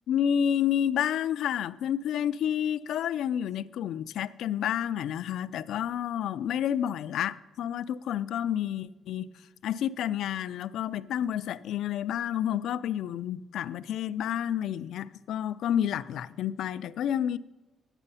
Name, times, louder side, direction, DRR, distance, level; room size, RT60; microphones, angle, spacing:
voice 1, 0.1-9.3 9.6-17.4, left 10 dB, 75° left, 0.3 m, -30 dB
9.8 x 7.5 x 5.5 m
cardioid pair, 90°, 0 cm